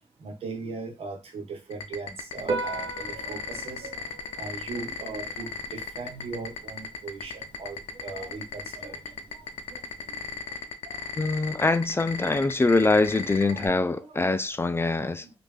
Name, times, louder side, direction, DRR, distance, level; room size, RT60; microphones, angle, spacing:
voice 1, 0.2-4.0 4.4-9.5 9.7-9.8 10.9-11.1 13.1-14.3 15.2-15.3, right 4 dB, 75° right, 1.1 m, -39 dB
sound 1, 1.7-13.7, left 6 dB, 80° left, 0.5 m, -35 dB
Piano, 2.4-10.4, right 3 dB, 50° right, 0.8 m, -39 dB
voice 2, 11.2-15.2, left 3 dB, 25° left, 0.4 m, -24 dB
3.1 x 2.5 x 3.3 m
supercardioid pair, 50°, 10 cm